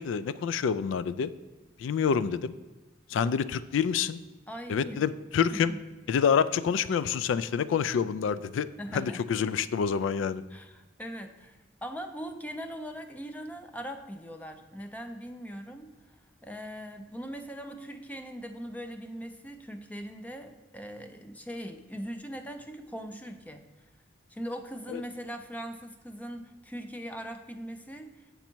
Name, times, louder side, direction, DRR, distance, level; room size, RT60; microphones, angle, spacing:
voice 1, 0.0-1.3 1.8-2.5 3.1-4.2 4.7-5.7 6.1-8.7 8.9-10.4 24.9-25.0, left 7 dB, 90° left, 16 dB, 0.3 m, -27 dB
voice 2, 4.5-5.0 5.5-5.8 8.8-9.3 10.5-15.9 16.4-23.7 24.3-28.3, equal, 10° left, 6 dB, 0.4 m, -40 dB
7.1 x 5.3 x 4.5 m, 1.1 s
head